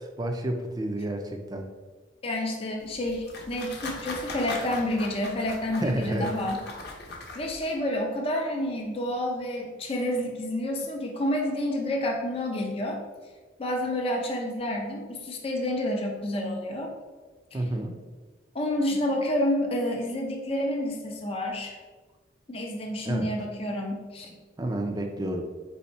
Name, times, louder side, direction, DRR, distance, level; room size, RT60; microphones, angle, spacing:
voice 1, 0.0-1.7 5.7-6.3 17.5-18.0 23.0-23.3 24.6-25.4, right 1 dB, 20° right, 4 dB, 0.4 m, -30 dB
voice 2, 2.2-6.6 7.3-13.0 13.6-16.9 17.5-17.7 18.5-21.8 22.5-24.4, left 1 dB, 30° left, 1 dB, 0.5 m, -29 dB
sound 1, 2.8-7.8, left 2 dB, 55° left, 0.8 m, -40 dB
4.2 x 2.7 x 4.1 m, 1.3 s
head